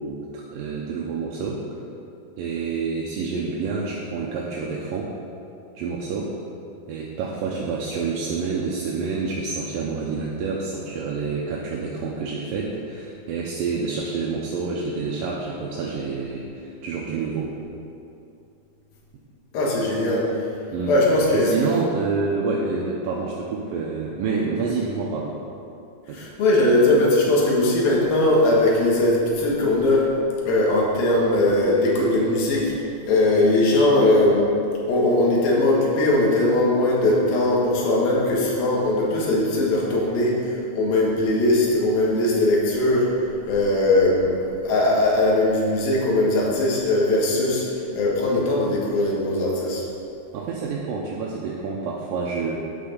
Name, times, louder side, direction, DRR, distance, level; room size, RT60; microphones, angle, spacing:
voice 1, 0.0-1.6 2.4-5.1 5.8-6.3 6.9-17.5 20.7-20.9 21.3-25.3 26.1-26.3 50.3-52.6, right 4 dB, 75° right, -3 dB, 2.4 m, -28 dB
voice 2, 19.5-20.4 20.9-21.5 26.1-30.1 30.4-32.7 33.1-34.5 34.9-43.1 43.5-47.7 47.9-49.8, left 2 dB, 75° left, -4 dB, 3.3 m, -20 dB
10.0 x 6.1 x 6.8 m, 2.7 s
omnidirectional pair, 4.4 m